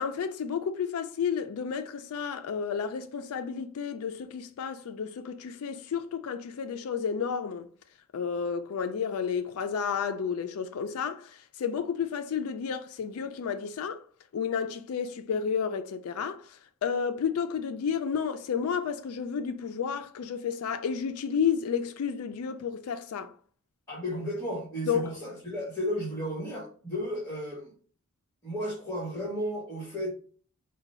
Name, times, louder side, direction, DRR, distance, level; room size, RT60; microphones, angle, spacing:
voice 1, 0.0-7.7 8.1-14.1 14.3-23.3 24.9-25.1, left 7 dB, 75° left, 0.4 m, -31 dB
voice 2, 23.9-27.7 28.4-30.1, equal, 15° left, 1.3 m, -33 dB
4.9 x 2.2 x 4.1 m
head